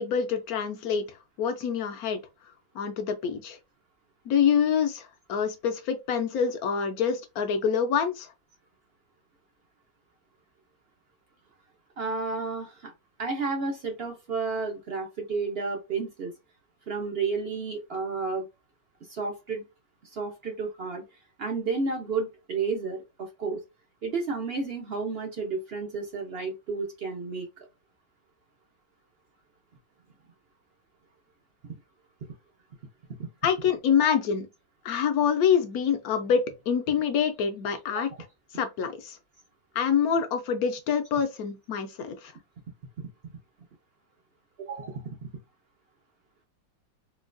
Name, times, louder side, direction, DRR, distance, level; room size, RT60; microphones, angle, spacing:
voice 1, 0.0-2.2 2.7-3.6 4.3-8.3 33.4-34.5 34.8-38.1 38.5-39.2 39.7-42.3, left 7 dB, 70° left, 0.8 m, -26 dB
voice 2, 12.0-12.9 13.2-16.3 16.9-18.4 19.1-19.6 20.0-21.0 21.4-23.6 24.0-27.7 34.0-34.1 37.9-38.0 44.6-45.3, right 4 dB, 70° right, 0.5 m, -31 dB
4.4 x 2.2 x 2.5 m
omnidirectional pair, 2.0 m